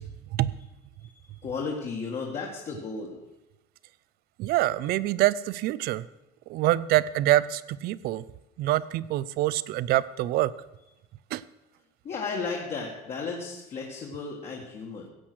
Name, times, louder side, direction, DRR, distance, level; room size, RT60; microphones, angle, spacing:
voice 1, 1.0-3.2 12.0-15.1, left 4 dB, 35° left, -1 dB, 1.8 m, -34 dB
voice 2, 4.4-6.0 6.5-8.2 8.6-10.5 11.3-11.4, right 15 dB, 50° right, 19 dB, 0.5 m, -25 dB
16.0 x 8.3 x 6.2 m, 0.97 s
cardioid pair, 155°, 20 cm